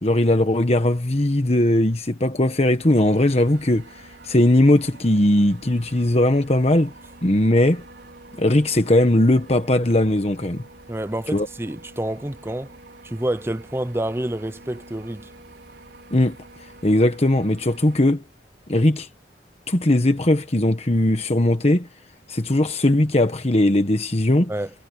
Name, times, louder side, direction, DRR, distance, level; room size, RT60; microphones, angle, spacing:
voice 1, 0.0-3.8 4.2-6.9 7.2-7.8 8.4-10.6 11.3-11.5 16.1-16.4 16.8-18.2 18.7-19.1 19.7-21.9 22.3-24.5, left 1 dB, 35° left, 1.3 m, -19 dB
Marine cranes moving at sea, 2.8-18.0, right 2 dB, 70° right, 5.0 m, -46 dB
voice 2, 10.9-12.7 13.0-15.3 24.5-24.7, right 1 dB, 15° right, 0.7 m, -28 dB
head